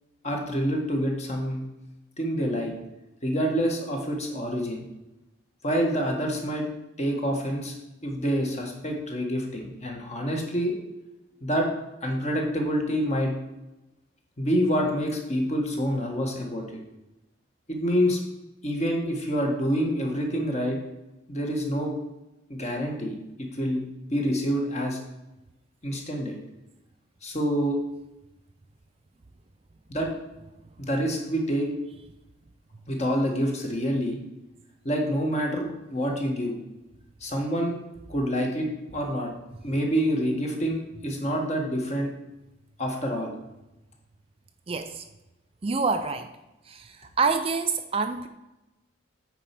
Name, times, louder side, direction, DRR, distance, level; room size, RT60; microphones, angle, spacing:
voice 1, 0.2-1.6 2.2-2.7 3.2-4.8 5.6-6.7 7.0-7.7 8.0-10.7 11.4-11.7 12.0-13.3 14.4-16.6 17.7-18.2 18.6-20.8 21.3-21.9 22.5-23.2 23.6-23.8 24.1-25.0 25.8-26.4 27.2-27.8 29.9-30.1 30.8-31.7 32.9-34.2 34.8-36.6 37.2-37.8 38.1-38.7 38.9-39.3 39.6-42.1 42.8-43.4, equal, 35° left, 1 dB, 1.5 m, -27 dB
voice 2, 44.7-45.0 45.6-46.3 46.6-48.3, right 4 dB, 30° right, 8 dB, 0.4 m, -27 dB
9.0 x 4.4 x 5.9 m, 0.98 s
head